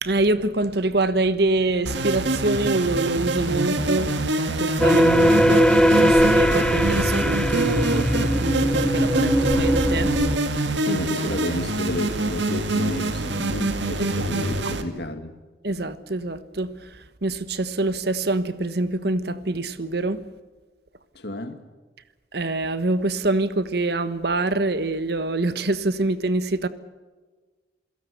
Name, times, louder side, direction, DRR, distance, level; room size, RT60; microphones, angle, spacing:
voice 1, 0.0-10.1 14.2-14.3 15.6-20.2 22.3-26.7, right 2 dB, 60° right, 1.3 m, -25 dB
sound 1, 1.8-14.8, right 2 dB, 75° right, 2.0 m, -25 dB
sound 2, 4.8-10.4, equal, 5° left, 1.1 m, -20 dB
voice 2, 10.8-15.3 21.1-21.6, left 1 dB, 60° left, 2.3 m, -31 dB
28.0 x 17.0 x 7.0 m
head